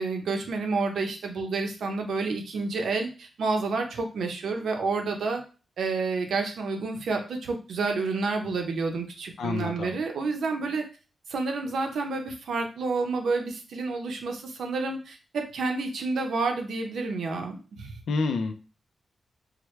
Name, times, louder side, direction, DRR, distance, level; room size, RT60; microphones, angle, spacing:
voice 1, 0.0-5.4 5.8-10.8 11.3-18.0, right 3 dB, 80° right, 3 dB, 0.7 m, -29 dB
voice 2, 9.4-9.9 18.1-18.5, left 3 dB, 85° left, 6 dB, 0.5 m, -28 dB
4.6 x 2.2 x 3.2 m, 0.35 s
wide cardioid pair, 150°, 0 cm